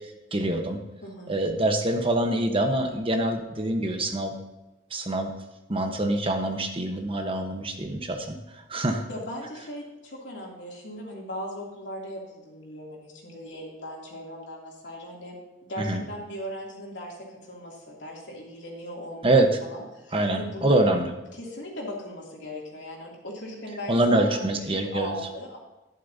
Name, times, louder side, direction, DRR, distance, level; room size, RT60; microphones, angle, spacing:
voice 1, 0.3-0.8 1.3-4.3 4.9-5.3 5.7-9.0 15.8-16.0 19.2-19.5 20.1-21.1 23.9-25.1, right 1 dB, 30° right, 4 dB, 1.1 m, -25 dB
voice 2, 1.0-1.3 9.1-15.4 15.7-19.3 19.6-20.7 21.3-25.6, equal, 80° left, -2 dB, 2.8 m, -38 dB
11.5 x 11.0 x 2.8 m, 1.0 s
head